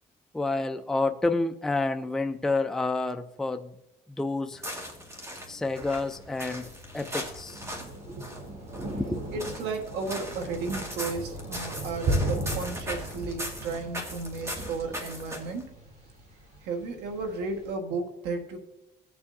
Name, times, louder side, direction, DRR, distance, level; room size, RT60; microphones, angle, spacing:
voice 1, 0.3-3.7 4.2-4.6 5.5-7.6 8.8-9.2, left 3 dB, 5° left, 0.4 m, -29 dB
sound 1, 4.5-15.7, equal, 15° right, 1.8 m, -39 dB
Thunder, 5.8-17.7, right 1 dB, 50° right, 4.0 m, -36 dB
voice 2, 9.3-15.7 16.6-18.6, right 4 dB, 90° right, 1.5 m, -34 dB
17.0 x 7.1 x 2.6 m
cardioid pair, 110°, 17 cm